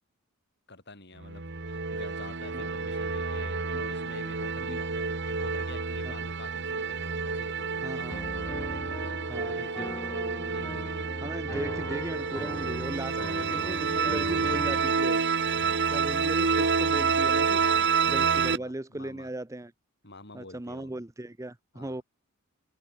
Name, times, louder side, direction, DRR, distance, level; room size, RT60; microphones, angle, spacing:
voice 1, 0.7-8.2 8.6-10.2 10.5-11.1 15.6-15.9 17.6-18.0 18.3-19.3 20.0-20.9 21.7-22.0, left 2 dB, 50° left, 7.5 m, -48 dB
sound 1, 1.2-18.6, right 5 dB, 55° right, 1.5 m, -29 dB
voice 2, 7.8-8.2 9.3-9.5 11.2-15.2 15.9-17.6 18.1-19.7 20.3-22.0, right 1 dB, 15° right, 0.7 m, -37 dB
Piano, 8.1-14.9, left 1 dB, 15° left, 3.5 m, -40 dB
head